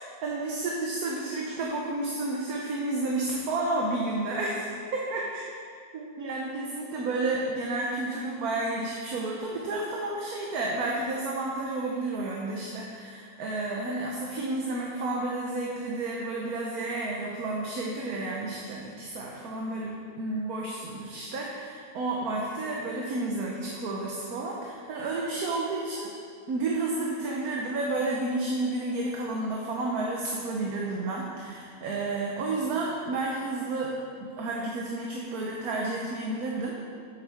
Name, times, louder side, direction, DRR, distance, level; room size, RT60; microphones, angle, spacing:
voice 1, 0.2-5.4 5.9-26.1 26.5-33.9 34.2-36.7, right 2 dB, 65° right, -2 dB, 1.3 m, -31 dB
9.6 x 7.8 x 3.5 m, 2.1 s
omnidirectional pair, 1.8 m